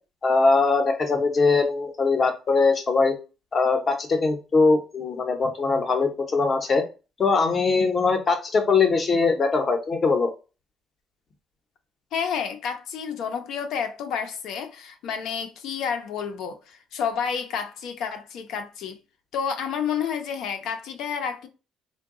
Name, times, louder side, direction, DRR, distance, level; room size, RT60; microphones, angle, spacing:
voice 1, 0.2-3.1 3.5-6.8 7.2-10.3, left 4 dB, 30° left, 0.8 m, -21 dB
voice 2, 12.1-19.0 19.3-21.5, left 7 dB, 70° left, 0.6 m, -30 dB
3.8 x 2.2 x 3.6 m
cardioid pair, 150°, 0 cm